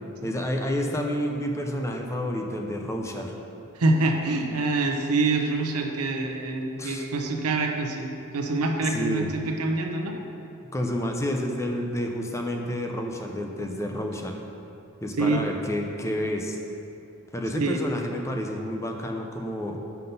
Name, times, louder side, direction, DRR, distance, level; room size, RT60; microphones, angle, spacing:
voice 1, 0.2-3.3 6.8-7.1 8.8-9.3 10.7-14.4 15.0-16.6 17.3-19.8, equal, 15° left, 2 dB, 0.5 m, -29 dB
voice 2, 3.7-10.2 15.2-15.5 17.5-17.8, right 3 dB, 85° right, 3 dB, 0.8 m, -26 dB
5.8 x 5.7 x 5.3 m, 2.9 s
head